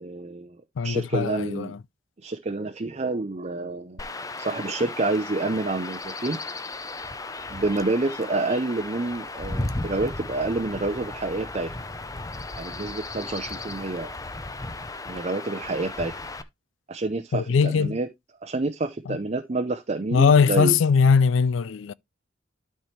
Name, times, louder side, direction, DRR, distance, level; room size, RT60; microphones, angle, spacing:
voice 1, 0.0-0.6 0.8-1.7 2.2-4.0 4.4-6.4 7.5-11.8 12.6-14.1 15.1-16.1 16.9-18.1 18.4-20.8, right 2 dB, 35° right, 0.7 m, -28 dB
voice 2, 0.8-1.8 17.3-18.0 19.1-19.2 20.1-21.9, left 5 dB, 85° left, 0.4 m, -20 dB
Chirp tweet / Wind / Stream, 4.0-16.4, left 2 dB, 20° left, 0.6 m, -35 dB
12.5 x 4.4 x 3.2 m
head